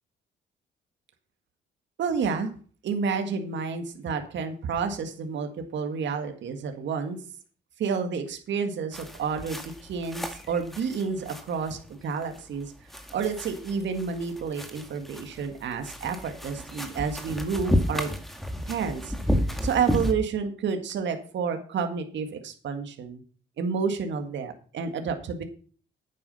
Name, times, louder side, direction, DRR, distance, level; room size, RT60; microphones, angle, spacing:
voice 1, 2.0-2.5 2.8-7.2 7.8-12.7 13.1-18.1 18.7-19.1 19.6-23.2 23.6-25.4, right 5 dB, 65° right, 6 dB, 1.8 m, -30 dB
sound 1, 8.9-20.1, equal, ahead, 2.0 m, -32 dB
9.6 x 8.6 x 5.5 m, 0.42 s
cardioid pair, 90°, 20 cm